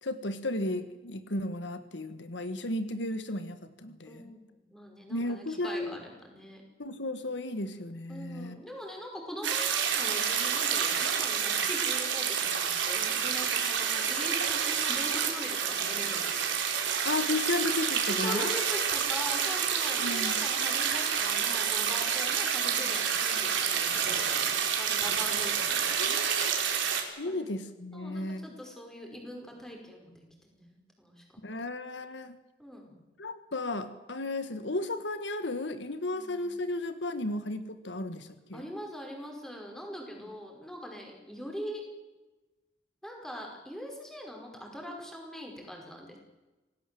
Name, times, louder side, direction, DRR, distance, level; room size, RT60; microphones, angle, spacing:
voice 1, 0.0-4.3 5.1-6.0 6.8-8.6 17.0-18.5 20.0-20.4 26.0-26.5 27.2-28.5 31.4-32.4 33.2-38.7, left 2 dB, 80° left, 10 dB, 1.6 m, -34 dB
voice 2, 4.1-6.6 8.1-16.6 18.1-26.2 27.3-27.5 27.9-31.2 32.6-33.0 36.1-36.8 38.5-41.8 43.0-46.2, equal, 5° left, 1 dB, 5.2 m, -42 dB
sound 1, 9.4-27.0, right 7 dB, 85° right, 4.0 m, -29 dB
27.0 x 17.5 x 7.8 m, 1.1 s
head